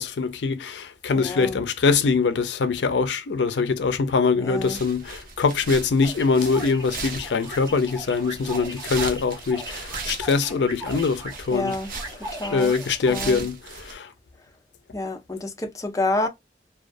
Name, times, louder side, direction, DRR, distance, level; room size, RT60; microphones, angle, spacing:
voice 1, 0.0-11.8 12.5-14.1, left 4 dB, 80° left, 0.5 m, -23 dB
voice 2, 1.2-1.6 4.4-4.8 11.5-11.9 12.3-12.7 13.1-13.4 14.9-16.3, left 2 dB, 20° left, 0.5 m, -28 dB
sound 1, 4.6-13.9, right 4 dB, 50° right, 0.7 m, -38 dB
sound 2, 6.0-13.2, equal, 15° right, 1.0 m, -39 dB
2.3 x 2.2 x 2.4 m
head